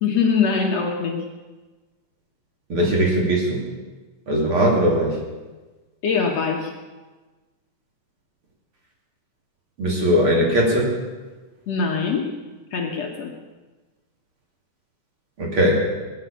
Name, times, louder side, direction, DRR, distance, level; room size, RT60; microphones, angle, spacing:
voice 1, 0.0-1.2 6.0-6.7 11.7-12.3 12.7-13.3, left 5 dB, 60° left, 1 dB, 2.2 m, -22 dB
voice 2, 2.7-3.6 4.3-5.2 9.8-10.9 15.4-15.8, equal, 40° right, -1 dB, 3.2 m, -19 dB
19.5 x 9.5 x 6.8 m, 1.3 s
omnidirectional pair, 3.7 m